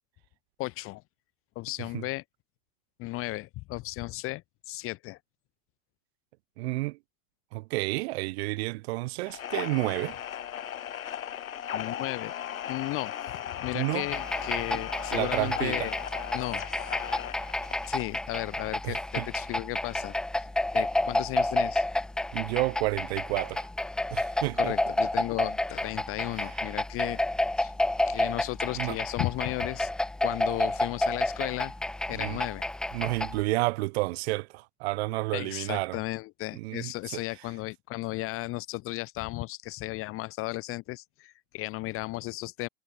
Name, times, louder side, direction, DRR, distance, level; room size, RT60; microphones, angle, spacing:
voice 1, 0.6-1.0 1.6-2.2 3.0-5.2 11.7-12.3 12.7-16.0 16.3-16.9 17.9-20.5 20.7-21.9 24.5-27.2 27.6-27.7 28.1-29.9 30.2-31.7 32.1-32.6 35.3-42.7, left 20 dB, 35° left, 0.9 m, -35 dB
voice 2, 6.6-7.0 7.5-10.2 13.7-14.1 15.1-15.9 18.8-19.3 22.3-23.7 24.1-24.7 28.8-29.0 32.2-32.4 32.9-36.0 36.6-37.2, right 22 dB, 50° right, 0.7 m, -30 dB
sound 1, 9.3-18.2, left 10 dB, 90° left, 4.1 m, -37 dB
sound 2, 14.1-33.4, left 1 dB, ahead, 0.4 m, -30 dB
hypercardioid pair, 125°, 40 cm